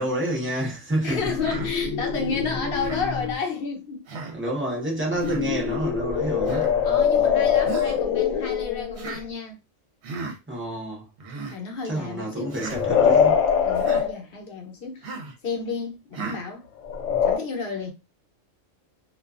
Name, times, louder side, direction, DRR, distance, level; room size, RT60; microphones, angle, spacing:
voice 1, 0.0-1.3 4.3-6.7 10.5-11.1 11.8-13.4, right 1 dB, 15° right, 0.6 m, -28 dB
voice 2, 1.0-4.1 6.8-9.6 11.5-12.6 13.6-15.1 15.4-16.6 17.3-17.9, left 4 dB, 55° left, 0.8 m, -31 dB
sound 1, 1.1-3.4 5.0-9.3 12.5-14.1 16.8-17.4, left 7 dB, 80° left, 0.9 m, -23 dB
Human voice, 1.4-1.7 2.8-3.1 4.1-4.4 5.2-5.4 6.5-6.7 7.7-8.0 9.0-9.2 10.0-10.4 11.2-11.6 12.5-12.8 13.8-14.1 15.0-15.3 16.1-16.4, right 4 dB, 65° right, 0.9 m, -35 dB
2.3 x 2.3 x 2.3 m
omnidirectional pair, 1.3 m